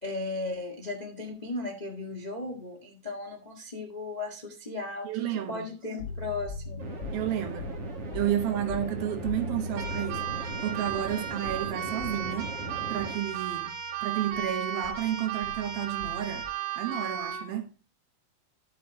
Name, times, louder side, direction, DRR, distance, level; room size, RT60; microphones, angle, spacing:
voice 1, 0.0-6.8, left 3 dB, 75° left, 0.4 m, -36 dB
voice 2, 5.0-5.7 7.1-7.8 8.1-12.5 12.9-13.7 14.0-16.5 16.8-17.7, right 11 dB, 75° right, 3.0 m, -31 dB
sound 1, 6.0-14.5 14.8-16.4, left 3 dB, 50° left, 2.2 m, -40 dB
sound 2, 6.8-13.2, right 3 dB, 40° right, 3.0 m, -40 dB
Keyboard (musical), 9.7-17.5, right 9 dB, 90° right, 3.8 m, -35 dB
12.0 x 7.4 x 2.9 m
omnidirectional pair, 4.5 m